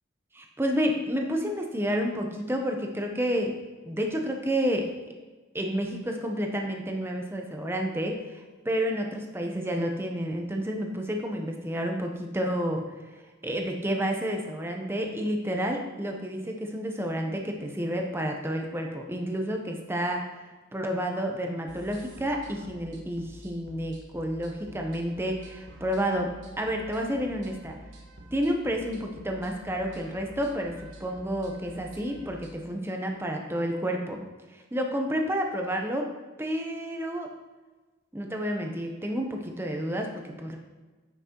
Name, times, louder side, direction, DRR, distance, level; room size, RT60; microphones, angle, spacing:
voice 1, 0.3-3.5 3.8-4.9 5.5-12.8 13.4-20.3 20.7-26.3 26.6-27.8 28.3-34.2 34.5-36.1 36.4-37.3 38.1-40.6, equal, 10° right, 2 dB, 0.8 m, -30 dB
sound 1, 21.7-32.5, right 1 dB, 75° right, 1.3 m, -48 dB
9.5 x 5.9 x 3.0 m, 1.3 s
head